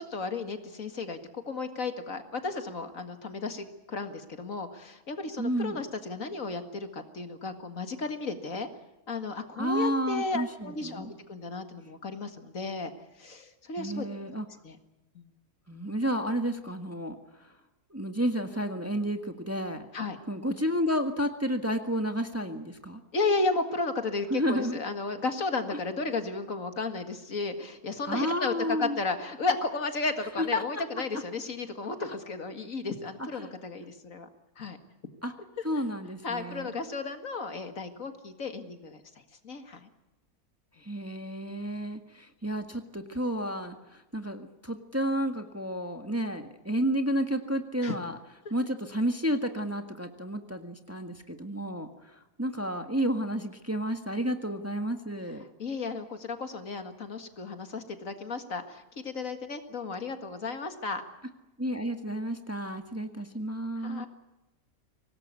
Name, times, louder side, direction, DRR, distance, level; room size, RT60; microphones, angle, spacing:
voice 1, 0.0-8.7 9.1-12.9 13.2-14.1 14.6-14.8 15.2-15.3 19.9-20.2 23.1-34.3 34.6-34.8 36.2-39.0 39.4-39.9 47.8-48.0 55.6-61.0 63.8-64.1, left 3 dB, 60° left, 7 dB, 2.3 m, -34 dB
voice 2, 5.4-5.8 9.6-11.1 13.8-14.4 15.7-17.5 17.9-19.9 20.3-23.0 24.3-24.8 25.7-25.8 28.0-29.0 30.4-30.8 33.3-33.5 35.2-35.3 35.6-36.7 40.8-48.2 48.5-55.4 61.6-64.1, equal, 10° right, 6 dB, 1.5 m, -31 dB
24.5 x 19.0 x 8.3 m, 1.0 s
omnidirectional pair, 1.6 m